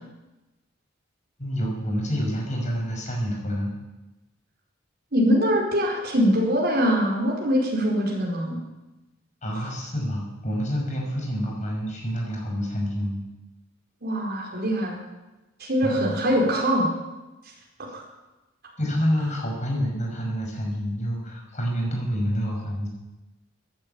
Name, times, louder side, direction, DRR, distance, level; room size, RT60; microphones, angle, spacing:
voice 1, 1.4-3.7 9.4-13.2 15.8-16.2 18.8-22.9, equal, 40° left, -1 dB, 6.0 m, -28 dB
voice 2, 5.1-8.6 9.5-9.7 14.0-15.0 15.6-16.9 17.9-18.0, equal, 55° right, -3 dB, 4.7 m, -23 dB
15.0 x 10.5 x 8.5 m, 1.1 s
head